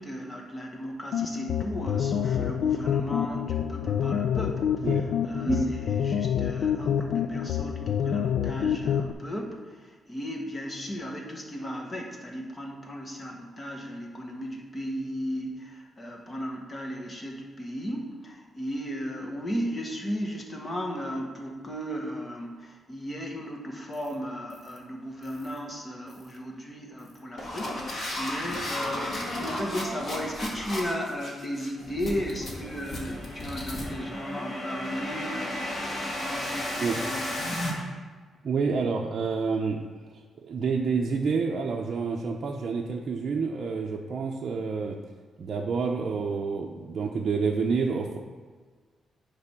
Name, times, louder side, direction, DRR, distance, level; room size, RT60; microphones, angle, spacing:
voice 1, 0.0-37.8, equal, 20° left, 0 dB, 1.4 m, -35 dB
sound 1, 1.1-9.1, left 8 dB, 75° left, 0.4 m, -27 dB
sound 2, 23.9-24.1 24.5-24.8 25.2-25.6 26.1-26.4 27.0-37.7, left 1 dB, 45° left, 2.0 m, -34 dB
voice 2, 38.4-39.8 40.1-45.0 45.4-48.2, right 5 dB, 50° right, -1 dB, 0.6 m, -28 dB
9.5 x 3.4 x 5.9 m, 1.5 s
cardioid pair, 115°, 0 cm